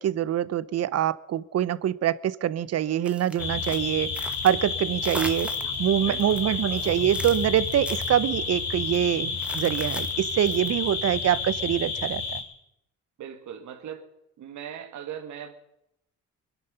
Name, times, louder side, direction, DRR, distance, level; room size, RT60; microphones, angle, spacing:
voice 1, 0.0-5.5 5.8-12.4, right 11 dB, 55° right, 19 dB, 0.7 m, -25 dB
sound 1, 3.0-4.7 5.0-5.8 6.1-8.1 8.8-9.0 9.4-10.7, right 1 dB, 5° right, 1.2 m, -40 dB
sound 2, 3.4-12.4, left 5 dB, 65° left, 5.1 m, -30 dB
voice 2, 6.0-6.8 13.2-14.1 14.4-15.5, right 9 dB, 75° right, 7 dB, 2.1 m, -39 dB
22.5 x 11.0 x 5.6 m, 0.84 s
cardioid pair, 90°, 30 cm